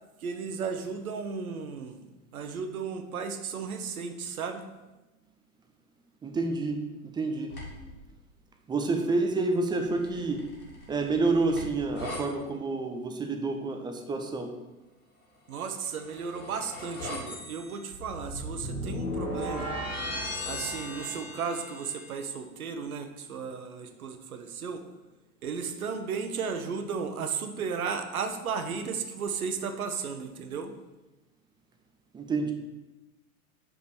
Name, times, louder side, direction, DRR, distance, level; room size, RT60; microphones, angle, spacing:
voice 1, 0.2-2.1 2.3-4.7 15.5-19.8 20.5-24.8 25.4-30.7, right 5 dB, 75° right, 7 dB, 1.0 m, -34 dB
voice 2, 6.2-6.8 7.1-7.5 8.7-10.4 10.9-14.5 32.1-32.5, right 3 dB, 10° right, 4 dB, 0.5 m, -28 dB
sound 1, 7.5-7.9 9.8-12.2 15.7-22.1, left 1 dB, 80° left, 2.5 m, -37 dB
5.3 x 4.9 x 6.2 m, 1.1 s
figure-of-eight pair, 100°, 44 cm